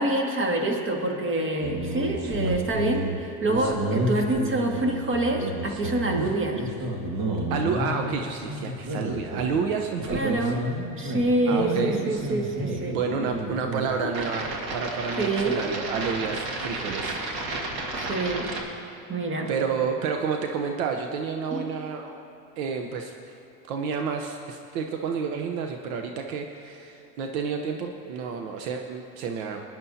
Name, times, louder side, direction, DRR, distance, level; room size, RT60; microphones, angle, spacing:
voice 1, 0.0-3.0 3.4-6.6 10.1-10.6 11.0-13.0 15.2-15.6 18.0-18.5 19.1-19.5 21.5-21.7, right 2 dB, 30° right, 1 dB, 1.9 m, -26 dB
sound 1, 1.6-18.6, right 1 dB, 55° right, 2.0 m, -31 dB
voice 2, 6.1-6.5 7.5-10.5 11.5-12.0 12.8-17.1 19.5-22.2 22.6-23.4 23.7-29.6, right 6 dB, 75° right, 4 dB, 1.0 m, -30 dB
18.5 x 10.5 x 2.8 m, 3.0 s
supercardioid pair, 105°, 42 cm